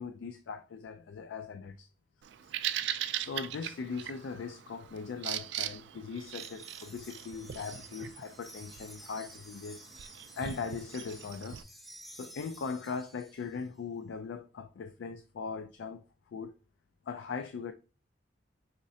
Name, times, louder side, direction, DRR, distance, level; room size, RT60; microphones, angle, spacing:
voice 1, 0.0-1.9 3.1-9.8 10.4-11.6 12.1-16.5 17.1-17.7, left 5 dB, 70° left, 0.3 m, -40 dB
Bird vocalization bird call bird song, 2.2-11.6, right 11 dB, 65° right, 0.3 m, -40 dB
Wind chime, 6.2-13.7, right 1 dB, ahead, 0.5 m, -52 dB
4.9 x 3.1 x 2.7 m
head